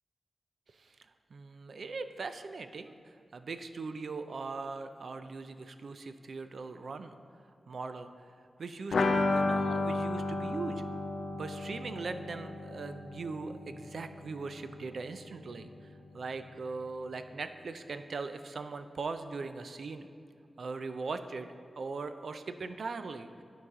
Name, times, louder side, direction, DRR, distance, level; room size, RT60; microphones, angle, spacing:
voice 1, 1.3-7.2 7.7-8.1 8.6-10.8 11.3-15.7 16.1-20.1 20.6-23.3, right 4 dB, 65° right, 9 dB, 0.4 m, -40 dB
sound 1, 8.9-14.5 14.8-14.9 15.2-15.3, left 3 dB, 70° left, 0.4 m, -32 dB
12.0 x 4.7 x 3.6 m, 2.5 s
wide cardioid pair, 150°, 0 cm